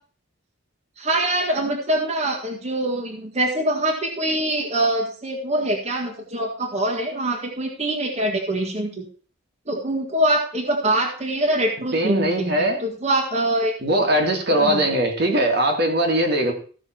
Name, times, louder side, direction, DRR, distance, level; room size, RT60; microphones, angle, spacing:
voice 1, 1.0-9.1 9.7-13.7 14.5-14.9, right 1 dB, 35° right, 0 dB, 1.9 m, -24 dB
voice 2, 11.9-12.8 13.8-16.5, right 1 dB, 55° right, 2 dB, 2.2 m, -20 dB
15.0 x 6.2 x 4.5 m, 0.40 s
head